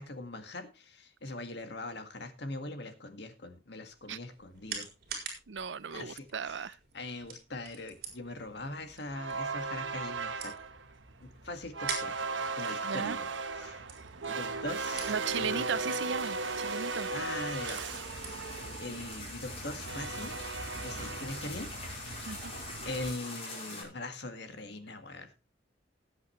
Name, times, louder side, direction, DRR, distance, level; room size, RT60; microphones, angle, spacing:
voice 1, 0.0-4.9 5.9-6.7 6.9-10.5 11.2-12.2 12.5-13.3 13.6-13.9 14.3-15.7 17.1-18.5 18.8-20.4 20.7-22.3 22.9-25.3, left 2 dB, 60° left, 1.8 m, -42 dB
sound 1, 3.9-20.3, right 6 dB, 55° right, 4.7 m, -47 dB
voice 2, 5.5-6.8 12.8-13.2 15.1-17.1 22.3-22.5, right 6 dB, 75° right, 0.6 m, -36 dB
sound 2, 8.4-8.5 8.8-23.1, right 4 dB, 90° right, 1.2 m, -37 dB
sound 3, 15.1-23.8, left 2 dB, 35° left, 4.9 m, -45 dB
19.5 x 8.1 x 3.1 m
head